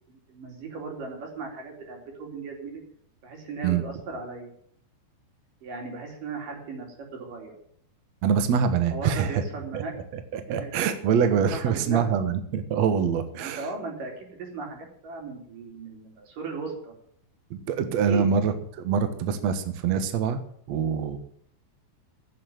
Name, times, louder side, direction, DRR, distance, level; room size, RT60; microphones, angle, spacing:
voice 1, 0.1-2.8 3.2-4.5 5.6-6.9 7.1-7.6 8.9-9.9 10.5-10.7 11.5-12.1 13.4-16.9 18.0-18.3, right 4 dB, 50° right, 1 dB, 5.4 m, -37 dB
voice 2, 8.2-9.3 9.7-9.8 10.3-13.6 17.5-18.5 18.8-20.4 20.7-21.2, right 7 dB, 70° right, 9 dB, 1.6 m, -24 dB
16.5 x 8.0 x 9.0 m, 0.65 s
omnidirectional pair, 5.0 m